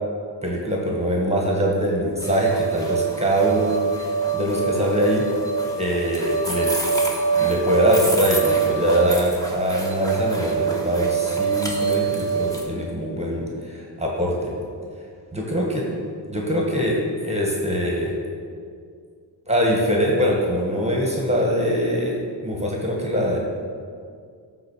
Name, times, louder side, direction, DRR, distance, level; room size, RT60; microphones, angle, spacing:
voice 1, 0.4-5.2 5.8-6.7 7.4-14.5 15.3-15.8 16.3-18.1 19.5-23.4, equal, 15° right, -2 dB, 1.9 m, -23 dB
sound 1, 2.2-12.6, right 5 dB, 10° left, 1.9 m, -24 dB
12.0 x 4.0 x 6.5 m, 2.2 s
cardioid pair, 55°, 44 cm